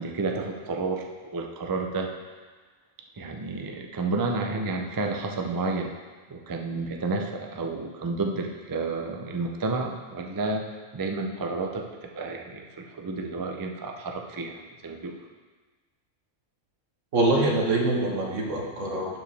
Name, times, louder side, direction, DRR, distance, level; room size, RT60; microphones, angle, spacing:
voice 1, 0.0-2.1 3.2-5.9 6.3-10.6 10.9-15.2, right 3 dB, 35° right, 3 dB, 0.3 m, -31 dB
voice 2, 17.1-19.2, right 2 dB, 80° right, -1 dB, 1.6 m, -24 dB
11.5 x 4.8 x 3.4 m, 1.4 s
omnidirectional pair, 1.3 m